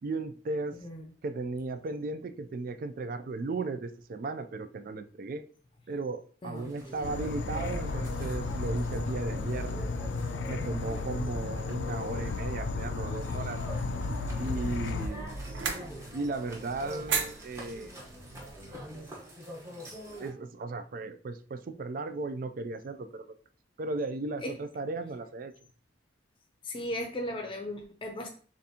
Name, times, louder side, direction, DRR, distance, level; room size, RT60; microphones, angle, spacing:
voice 1, 0.0-0.8 1.2-5.4 5.9-9.8 10.5-13.6 14.4-15.5 16.1-18.0 20.2-23.3 23.8-25.5, right 3 dB, 50° right, 10 dB, 0.3 m, -36 dB
voice 2, 0.8-1.1 6.4-6.7 10.8-11.8 14.9-15.3 24.4-24.6 26.6-28.3, left 1 dB, 30° left, 3 dB, 0.6 m, -38 dB
sound 1, 6.5-20.3, right 1 dB, 15° right, 1.0 m, -46 dB
Insect / Frog, 7.0-15.1, left 3 dB, 80° left, 0.4 m, -33 dB
sound 2, 13.7-19.1, right 5 dB, 90° right, 0.6 m, -38 dB
6.9 x 2.5 x 2.8 m, 0.43 s
head